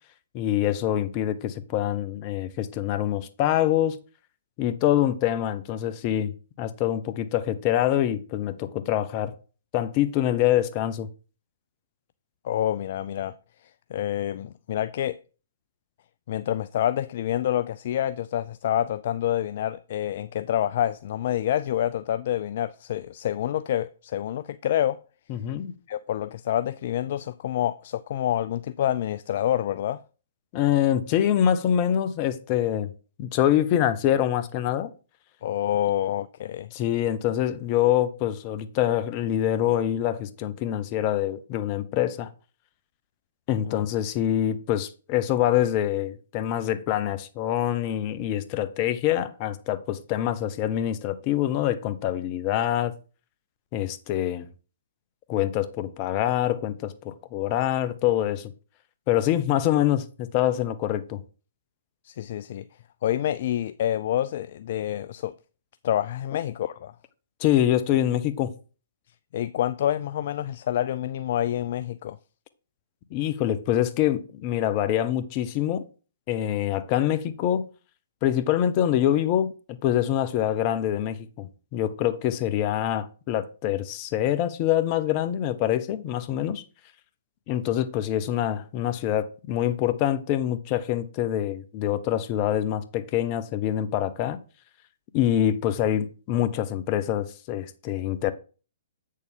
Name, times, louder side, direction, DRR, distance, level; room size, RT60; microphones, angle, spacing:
voice 1, 0.3-4.0 4.6-6.3 6.6-9.3 9.7-11.1 25.3-25.8 30.5-32.9 33.2-34.9 36.7-42.3 43.5-52.9 53.7-54.5 55.3-58.5 59.1-61.2 67.4-68.5 73.1-75.8 76.3-77.7 78.2-79.5 79.8-86.6 87.5-94.4 95.1-98.3, left 11 dB, 35° left, 0.8 m, -25 dB
voice 2, 12.4-13.3 13.9-15.2 16.3-25.0 25.9-30.0 35.4-36.7 43.7-43.8 62.0-62.7 63.0-65.3 65.8-66.9 69.3-72.2, left 11 dB, 50° left, 0.3 m, -27 dB
8.2 x 6.6 x 3.6 m
figure-of-eight pair, 120°, 0 cm